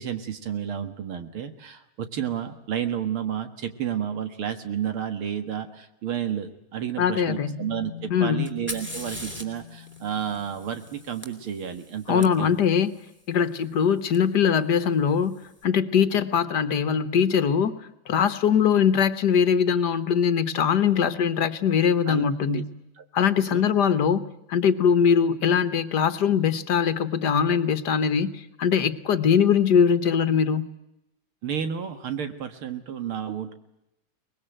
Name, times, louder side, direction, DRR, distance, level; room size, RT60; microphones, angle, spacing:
voice 1, 0.0-12.6 22.1-22.6 23.0-23.1 23.5-23.6 31.4-33.5, right 9 dB, 80° right, 9 dB, 2.5 m, -31 dB
voice 2, 7.0-7.6 8.1-8.5 12.1-12.9 13.3-22.7 23.1-30.7, left 7 dB, 55° left, 13 dB, 1.6 m, -22 dB
sound 1, 7.2-11.5, left 10 dB, 40° right, 2.7 m, -42 dB
Fire, 8.5-12.3 14.1-14.2 15.1-15.5, left 1 dB, 5° right, 2.9 m, -40 dB
24.0 x 20.5 x 9.0 m, 0.88 s
omnidirectional pair, 2.3 m